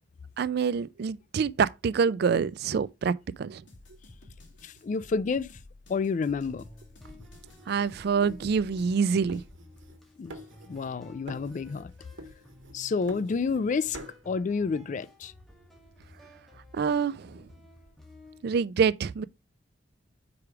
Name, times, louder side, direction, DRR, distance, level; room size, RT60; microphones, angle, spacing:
voice 1, 0.4-3.6 7.7-9.4 16.7-17.4 18.4-19.2, right 6 dB, 55° right, 0.4 m, -26 dB
sound 1, 3.7-9.5, left 2 dB, 70° left, 2.6 m, -52 dB
voice 2, 4.6-5.5 5.9-6.6 10.2-10.3 10.7-11.9 12.7-14.0 14.3-15.3, left 4 dB, 40° left, 0.3 m, -29 dB
sound 2, 6.5-18.4, left 1 dB, ahead, 1.5 m, -54 dB
sound 3, 7.0-9.0 9.3-10.0 10.3-11.0 11.3-11.9 12.2-13.7 13.9-14.2, right 1 dB, 85° right, 1.3 m, -47 dB
4.9 x 4.8 x 4.8 m
head